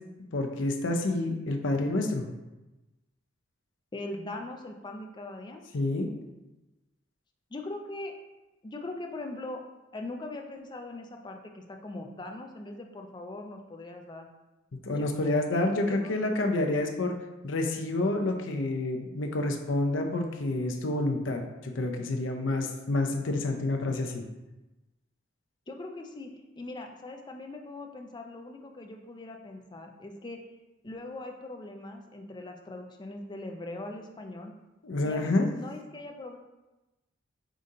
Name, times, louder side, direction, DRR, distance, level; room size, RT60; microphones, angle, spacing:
voice 1, 0.3-2.3 5.7-6.1 14.8-17.2 17.4-24.2 34.8-35.5, left 2 dB, 70° left, 3 dB, 0.6 m, -28 dB
voice 2, 3.9-5.6 7.5-8.1 8.6-9.6 9.9-14.3 14.9-16.3 25.7-30.4 30.8-34.5 35.0-36.4, left 2 dB, 20° left, 3 dB, 0.4 m, -41 dB
5.0 x 2.7 x 3.7 m, 1.0 s
head